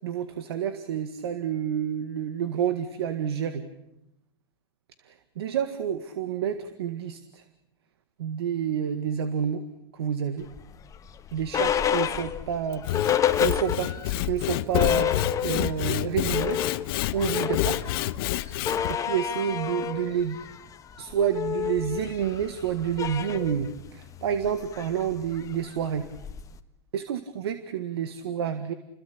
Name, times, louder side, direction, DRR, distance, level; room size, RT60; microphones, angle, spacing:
voice 1, 0.0-3.6 5.0-7.4 8.2-9.6 9.9-10.5 11.3-12.8 13.4-15.1 15.4-16.6 17.1-17.8 18.9-20.4 21.0-26.1 26.9-28.7, right 8 dB, 80° right, 10 dB, 1.9 m, -29 dB
sound 1, 10.5-14.2 14.5-14.6 14.7-15.8 16.1-26.6, left 9 dB, 25° left, 1.6 m, -30 dB
Sawing / Wood, 12.7-18.9, left 15 dB, 60° left, 1.2 m, -28 dB
29.5 x 21.5 x 8.7 m, 0.85 s
hypercardioid pair, 115°, 13 cm